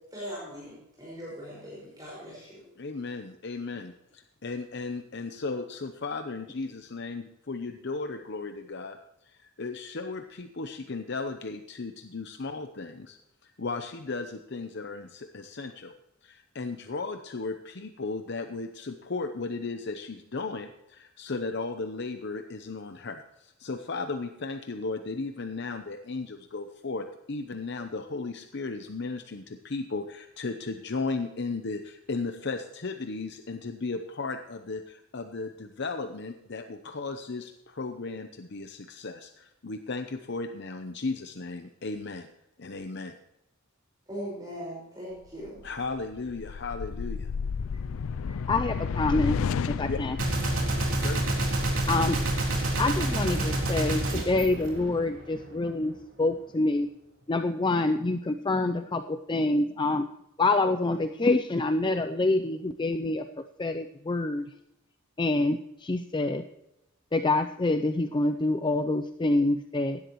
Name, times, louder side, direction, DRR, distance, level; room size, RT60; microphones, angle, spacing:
voice 1, 0.1-2.6 44.1-45.6, equal, 20° right, -6 dB, 5.4 m, -40 dB
voice 2, 2.8-9.0 9.2-13.2 13.4-15.9 16.2-42.3 42.6-43.1 45.6-47.3 49.9-50.0 51.0-51.4, left 3 dB, 55° left, 7 dB, 0.8 m, -35 dB
sound 1, 45.4-53.9, left 5 dB, 80° left, 0.4 m, -33 dB
voice 3, 48.3-50.2 51.9-52.3 52.8-56.9 57.3-60.1 60.4-63.2 63.6-64.5 65.2-66.4 67.1-70.0, left 2 dB, 20° left, 8 dB, 0.5 m, -26 dB
Gunshot gunfire, 50.2-55.4, right 1 dB, 70° right, 3.8 m, -28 dB
17.0 x 12.0 x 3.1 m, 0.88 s
head